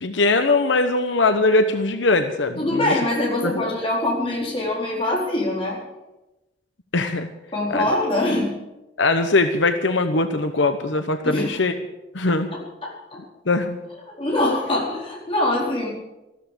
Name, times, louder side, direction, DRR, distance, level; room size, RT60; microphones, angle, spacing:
voice 1, 0.0-2.9 3.4-3.7 6.9-7.3 7.7-7.9 9.0-11.7 12.1-12.5 13.5-13.8, left 3 dB, 85° left, 8 dB, 1.0 m, -21 dB
voice 2, 2.6-5.8 7.5-8.5 11.2-11.5 12.8-13.2 14.2-15.9, left 1 dB, 30° left, -3 dB, 4.4 m, -23 dB
14.0 x 13.5 x 6.9 m, 1.0 s
head